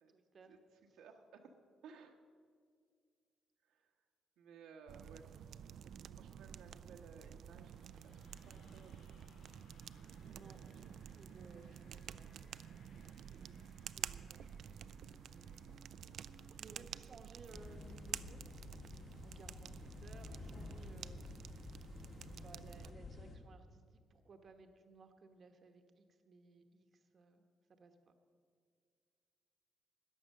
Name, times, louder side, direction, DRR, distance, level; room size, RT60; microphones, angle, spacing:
voice 1, 0.1-0.5 10.2-12.4 13.3-14.8 15.3-15.6 16.6-18.4 19.2-21.2 22.4-27.4 27.7-28.0, right 4 dB, 50° right, 6 dB, 1.0 m, -60 dB
voice 2, 0.9-1.5 1.8-2.2 3.6-3.9 4.4-5.3 6.2-9.1 16.7-16.9, right 5 dB, 90° right, 2 dB, 1.3 m, -58 dB
sound 1, 4.9-22.9, right 9 dB, 70° right, 0.4 m, -51 dB
sound 2, 7.6-16.8, left 2 dB, 80° left, 1.9 m, -66 dB
sound 3, 17.5-23.4, left 2 dB, 50° left, 1.8 m, -51 dB
14.0 x 9.6 x 6.5 m, 2.1 s
cardioid pair, 90°, 0 cm